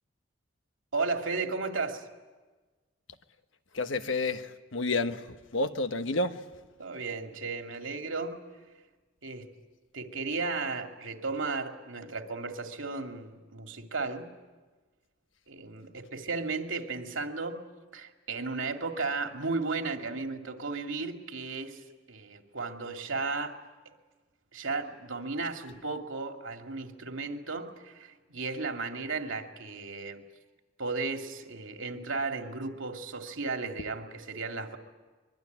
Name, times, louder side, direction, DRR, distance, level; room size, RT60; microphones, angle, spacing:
voice 1, 0.9-2.0 6.8-8.4 9.2-9.5 9.9-14.3 15.5-17.6 17.9-21.8 22.1-23.6 24.5-30.2 30.8-34.8, right 3 dB, 80° right, 2.4 m, -34 dB
voice 2, 3.7-6.4, left 2 dB, 75° left, 1.2 m, -30 dB
24.5 x 23.0 x 9.4 m
head